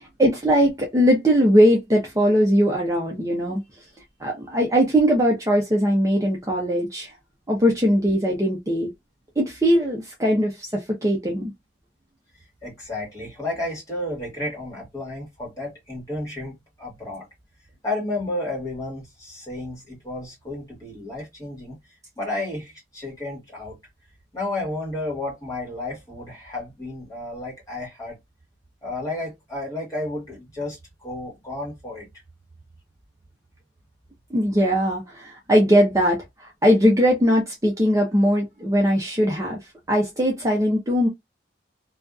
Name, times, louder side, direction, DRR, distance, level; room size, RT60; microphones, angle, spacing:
voice 1, 0.0-3.6 4.2-7.1 7.5-8.9 9.4-11.5 34.3-39.6 39.9-41.1, equal, 15° right, 0.5 m, -20 dB
voice 2, 12.6-17.3 17.8-21.8 22.2-23.8 24.3-28.2 28.8-30.8 31.0-32.1, left 2 dB, 20° left, 1.3 m, -32 dB
2.6 x 2.3 x 2.3 m
head